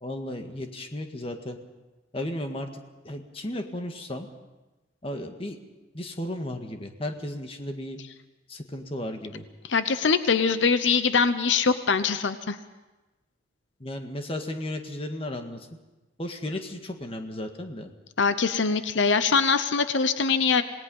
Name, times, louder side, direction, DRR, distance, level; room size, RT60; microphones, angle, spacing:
voice 1, 0.0-1.6 2.1-4.3 5.0-5.6 5.9-8.0 8.5-9.4 13.8-15.7 16.2-17.9, left 1 dB, 30° left, 5 dB, 1.8 m, -34 dB
voice 2, 9.7-12.6 18.2-20.6, left 5 dB, 85° left, 11 dB, 0.9 m, -23 dB
27.0 x 18.5 x 5.5 m, 1.1 s
head